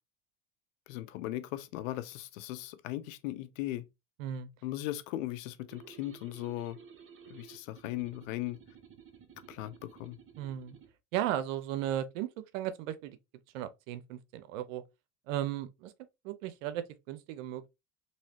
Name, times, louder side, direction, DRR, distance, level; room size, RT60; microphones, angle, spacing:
voice 1, 0.9-3.8 4.6-6.8 7.3-8.6 9.5-10.2, left 15 dB, 85° left, 0.6 m, -38 dB
voice 2, 4.2-4.5 10.4-10.8 11.1-12.3 12.5-13.2 13.5-14.8 15.3-15.9 16.2-17.7, right 11 dB, 85° right, 0.6 m, -35 dB
sound 1, 5.7-10.9, right 7 dB, 35° right, 0.8 m, -54 dB
3.1 x 2.8 x 2.7 m
supercardioid pair, 90°, 38 cm